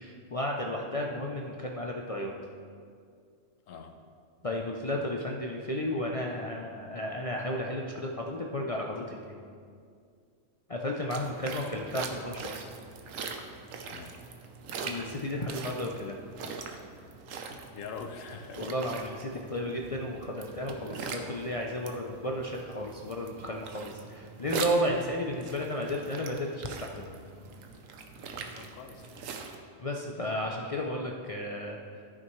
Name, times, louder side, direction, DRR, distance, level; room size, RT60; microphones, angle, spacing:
voice 1, 0.0-2.4 4.4-9.4 10.7-12.7 14.8-16.2 18.6-27.2 29.8-32.0, left 1 dB, 50° left, 0 dB, 0.4 m, -33 dB
sound 1, 11.1-29.6, right 5 dB, 80° right, 1.1 m, -42 dB
voice 2, 13.8-14.2 17.7-18.7 25.3-25.7 28.5-29.3 30.7-30.8, left 5 dB, 75° left, 6 dB, 1.1 m, -44 dB
13.5 x 5.9 x 3.1 m, 2.2 s
omnidirectional pair, 1.4 m